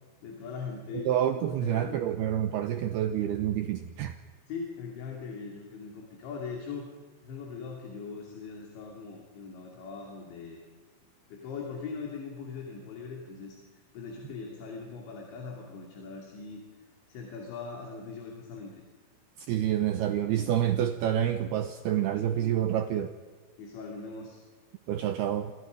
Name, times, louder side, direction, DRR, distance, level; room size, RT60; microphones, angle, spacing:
voice 1, 0.2-1.1 1.5-2.1 4.5-6.9 7.2-10.6 11.3-16.6 17.1-18.8 23.6-24.4, left 5 dB, 70° left, 1 dB, 5.0 m, -40 dB
voice 2, 0.9-4.2 19.5-23.1 24.9-25.5, right 11 dB, 80° right, 9 dB, 2.3 m, -28 dB
27.5 x 27.0 x 5.3 m, 1.4 s
omnidirectional pair, 5.6 m